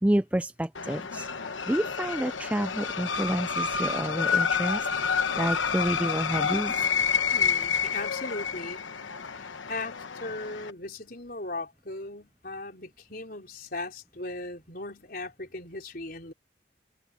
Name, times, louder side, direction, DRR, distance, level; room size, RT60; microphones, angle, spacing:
voice 1, 0.0-1.3 1.7-6.8, right 1 dB, 5° right, 0.4 m, -29 dB
sound 1, 0.7-10.7, left 6 dB, 85° left, 1.1 m, -29 dB
voice 2, 7.3-8.9 9.4-16.3, left 2 dB, 50° left, 4.5 m, -38 dB
head